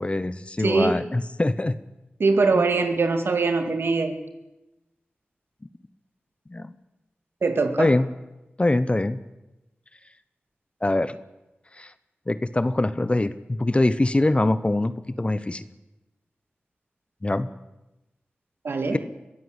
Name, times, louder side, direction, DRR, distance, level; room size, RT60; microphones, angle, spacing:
voice 1, 0.0-1.8 2.5-2.6 6.5-6.7 7.8-8.1 8.6-9.2 10.8-11.2 11.7-11.9 12.3-15.6 17.2-17.5 18.9-19.0, left 2 dB, 30° left, 14 dB, 1.0 m, -23 dB
voice 2, 0.6-1.0 2.2-4.2 7.4-7.9 18.6-19.0, right 3 dB, 80° right, 7 dB, 2.3 m, -22 dB
23.0 x 14.0 x 8.2 m, 0.98 s
cardioid pair, 50°, 4 cm